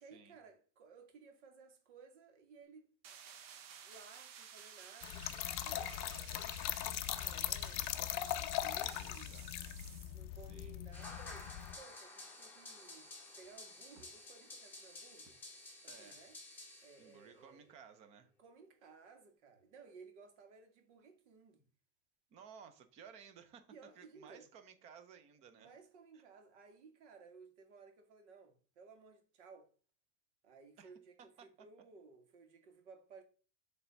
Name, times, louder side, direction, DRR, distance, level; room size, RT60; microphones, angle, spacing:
voice 1, 0.0-2.9 3.8-9.4 10.1-13.1 13.4-15.4 15.8-16.4 16.8-17.7 18.4-21.6 23.7-24.5 25.5-29.7 30.4-33.2, right 4 dB, 75° right, 1.9 m, -58 dB
sound 1, 3.0-10.2, right 8 dB, 55° right, 1.1 m, -54 dB
Trickle dribble / Fill (with liquid), 5.0-11.8, left 13 dB, 45° left, 0.4 m, -40 dB
voice 2, 8.7-9.5 10.5-10.8 14.0-14.1 15.9-16.3 17.0-18.3 22.3-25.7 26.1-26.2 30.8-30.9 31.2-31.5, right 7 dB, 20° right, 0.4 m, -57 dB
sound 2, 10.9-17.3, left 2 dB, 5° left, 1.1 m, -52 dB
7.0 x 3.3 x 5.1 m
supercardioid pair, 175°, 35 cm